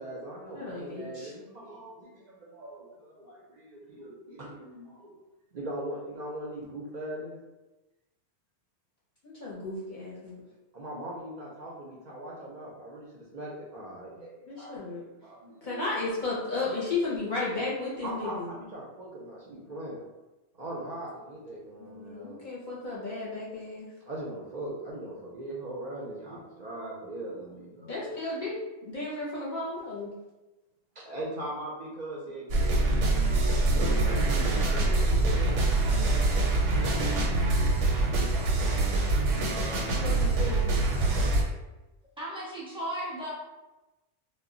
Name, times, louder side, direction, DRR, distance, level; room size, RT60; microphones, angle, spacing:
voice 1, 0.0-5.2 5.5-7.4 10.7-16.2 18.0-20.0 20.5-22.4 24.1-28.0 31.0-33.5 34.6-35.7, right 1 dB, 55° right, -4 dB, 0.4 m, -40 dB
voice 2, 0.5-1.3 9.2-10.4 14.5-15.0 15.6-18.5 21.8-23.9 27.9-28.5 28.8-30.1 33.7-34.3 39.9-40.8, left 3 dB, 50° left, -7 dB, 0.7 m, -34 dB
sound 1, 32.5-41.4, right 2 dB, 90° right, 0.9 m, -25 dB
voice 3, 42.2-43.3, right 1 dB, 5° right, -8 dB, 0.6 m, -35 dB
2.1 x 2.0 x 3.6 m, 1.1 s
omnidirectional pair, 1.2 m